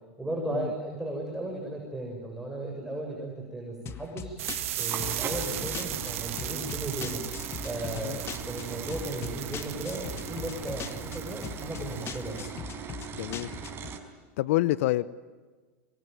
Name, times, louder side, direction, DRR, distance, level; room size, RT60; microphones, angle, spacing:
voice 1, 0.2-4.3 4.8-7.2 7.6-12.4, right 2 dB, 5° right, -1 dB, 7.3 m, -35 dB
sound 1, 3.9-14.0, left 9 dB, 35° left, 1.6 m, -41 dB
sound 2, 4.3-14.0, right 6 dB, 30° right, 5.2 m, -40 dB
sound 3, 4.4-12.3, right 11 dB, 75° right, 2.5 m, -37 dB
voice 2, 13.1-13.5 14.4-15.1, left 17 dB, 70° left, 17 dB, 0.9 m, -27 dB
24.5 x 24.5 x 9.3 m, 1.4 s
hypercardioid pair, 105°, 7 cm